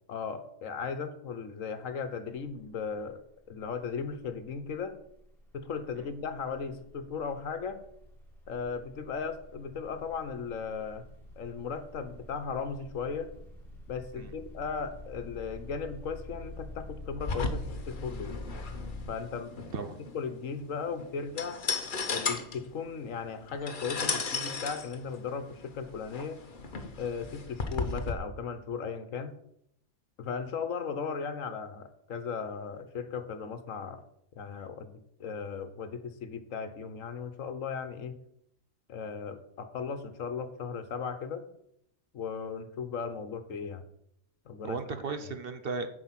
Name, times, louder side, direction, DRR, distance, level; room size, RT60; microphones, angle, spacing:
voice 1, 0.1-3.2 3.5-4.9 5.5-7.8 8.5-11.0 11.4-13.3 13.9-18.4 19.1-19.9 20.1-21.6 22.1-26.4 27.0-29.3 30.2-34.0 34.3-38.2 38.9-41.4 42.1-43.8 44.4-44.8 45.2-45.3, left 5 dB, 75° left, 10 dB, 1.4 m, -37 dB
sound 1, 2.3-2.6 2.9-19.1, left 2 dB, ahead, 3.1 m, -47 dB
sound 2, 17.2-28.1, left 4 dB, 40° left, 1.1 m, -35 dB
voice 2, 44.6-45.9, right 4 dB, 50° right, 9 dB, 0.9 m, -35 dB
9.9 x 5.3 x 7.4 m, 0.75 s
omnidirectional pair, 1.4 m